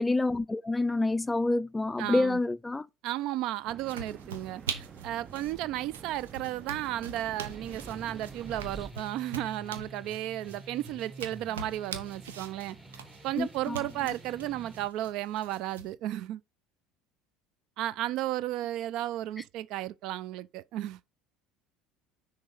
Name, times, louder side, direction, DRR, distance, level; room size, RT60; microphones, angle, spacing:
voice 1, 0.0-2.9 13.4-13.8, left 2 dB, 15° left, 0.4 m, -28 dB
voice 2, 2.0-2.4 3.0-12.8 13.2-16.4 17.8-21.0, right 14 dB, 60° right, 0.4 m, -34 dB
sound 1, 3.7-8.9, right 6 dB, 35° right, 0.7 m, -47 dB
sound 2, 3.8-15.9, right 6 dB, 85° right, 0.9 m, -44 dB
sound 3, 7.4-14.9, right 2 dB, 10° right, 1.3 m, -49 dB
6.2 x 3.8 x 5.5 m
hypercardioid pair, 70°, 0 cm